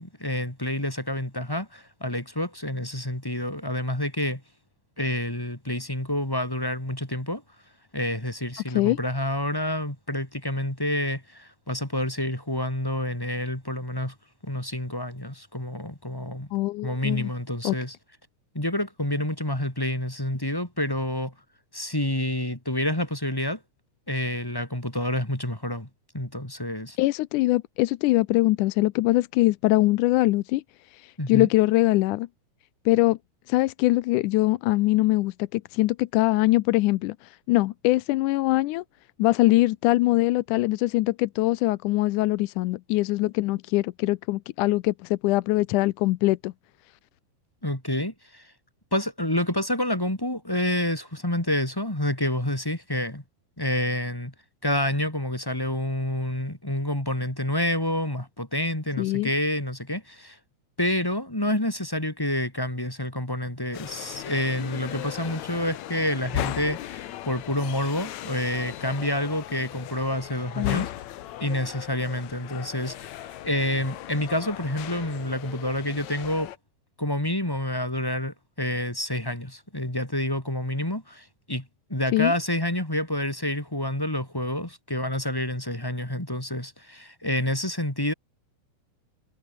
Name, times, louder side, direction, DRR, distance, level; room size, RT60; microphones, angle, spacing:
voice 1, 0.0-4.4 5.0-7.4 7.9-14.1 14.4-16.5 16.8-17.9 18.5-21.3 21.7-23.6 24.1-25.9 26.1-27.0 31.2-31.5 47.6-48.5 48.9-53.2 53.6-54.3 54.6-60.4 60.8-70.9 71.4-76.5 77.0-88.1, left 1 dB, 5° left, 3.3 m, -28 dB
voice 2, 8.7-9.0 16.5-17.3 17.6-17.8 27.0-30.6 30.9-32.3 32.9-33.2 33.5-38.8 39.2-46.5 59.0-59.3 70.6-70.9 82.1-82.3, left 18 dB, 90° left, 2.1 m, -23 dB
sound 1, 63.7-76.6, left 13 dB, 70° left, 2.2 m, -37 dB
omnidirectional pair, 3.6 m